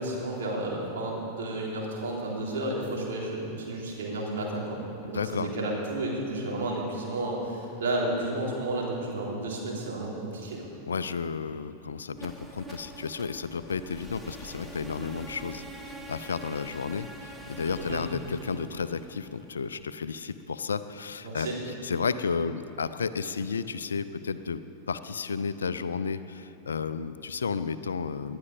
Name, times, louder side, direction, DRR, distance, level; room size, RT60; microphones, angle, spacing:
voice 1, 0.0-4.8 5.1-10.7 17.9-18.0 21.2-21.6, right 2 dB, 60° right, -3 dB, 3.6 m, -32 dB
voice 2, 5.1-5.5 10.9-24.6 24.9-28.4, left 5 dB, 70° left, 13 dB, 0.5 m, -32 dB
sound 1, 12.1-20.1, right 1 dB, 5° right, 1.4 m, -45 dB
19.5 x 11.5 x 5.1 m, 3.0 s
figure-of-eight pair, 90°, 0 cm